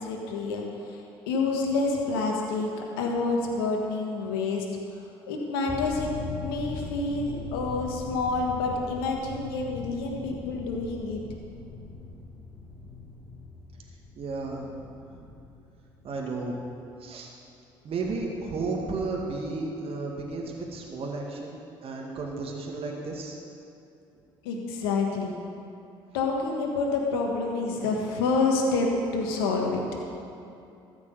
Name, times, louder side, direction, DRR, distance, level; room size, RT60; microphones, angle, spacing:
voice 1, 0.0-4.7 5.3-6.1 6.4-11.2 24.4-25.5 26.1-29.8, left 3 dB, 80° left, 0 dB, 1.5 m, -28 dB
sound 1, 5.7-17.0 17.3-17.4, left 3 dB, 15° left, 2.6 m, -41 dB
voice 2, 14.2-15.3 16.0-16.7 17.0-17.3 17.8-23.4, right 3 dB, 50° right, -1 dB, 2.0 m, -33 dB
13.5 x 6.1 x 8.0 m, 2.6 s
hypercardioid pair, 55°, 12 cm